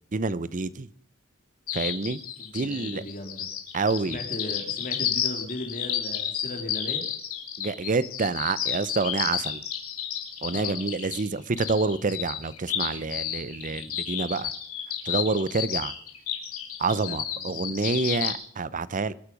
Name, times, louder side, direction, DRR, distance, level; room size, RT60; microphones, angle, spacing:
voice 1, 0.1-0.9 1.7-2.2 2.5-3.0 3.7-4.2 7.6-9.6 10.4-14.5 15.1-15.9 16.8-19.1, right 4 dB, 40° right, 18 dB, 0.6 m, -28 dB
sound 1, 1.7-18.3, left 10 dB, 85° left, 3.0 m, -31 dB
voice 2, 2.3-3.5 4.0-7.0 10.5-10.8 17.0-18.1, left 1 dB, 40° left, 4 dB, 3.0 m, -38 dB
25.0 x 9.5 x 5.2 m, 0.64 s
head